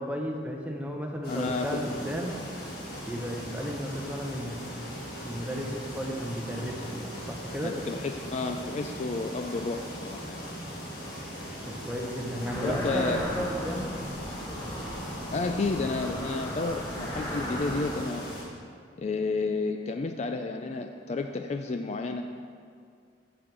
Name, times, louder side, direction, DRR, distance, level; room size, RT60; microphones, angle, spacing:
voice 1, 0.0-2.3 3.1-4.6 5.2-7.8 11.6-13.9, equal, 10° right, 0 dB, 0.8 m, -34 dB
sound 1, 1.2-18.4, equal, 55° left, 1.8 m, -39 dB
voice 2, 1.3-1.8 7.6-10.4 12.6-13.3 15.3-18.3 19.0-22.2, left 3 dB, 35° left, 6 dB, 0.3 m, -31 dB
sound 2, 12.4-17.9, equal, 15° left, 1.2 m, -36 dB
6.9 x 6.2 x 6.0 m, 2.2 s
head